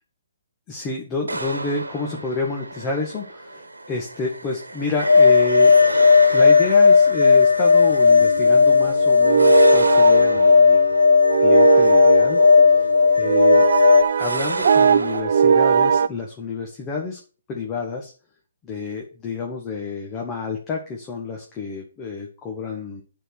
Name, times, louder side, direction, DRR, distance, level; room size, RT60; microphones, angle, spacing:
voice 1, 0.7-5.8 6.3-10.8 11.4-12.9 13.1-13.7 14.2-17.2 17.5-18.1 18.6-23.0, left 3 dB, 20° left, 0 dB, 1.9 m, -29 dB
sound 1, 1.3-15.2, right 2 dB, 85° right, 1.2 m, -33 dB
sound 2, 5.1-14.0, left 5 dB, 85° left, 0.8 m, -15 dB
sound 3, 8.1-16.1, right 6 dB, 60° right, 0.4 m, -20 dB
10.0 x 4.6 x 6.1 m, 0.37 s
figure-of-eight pair, 135°, 0 cm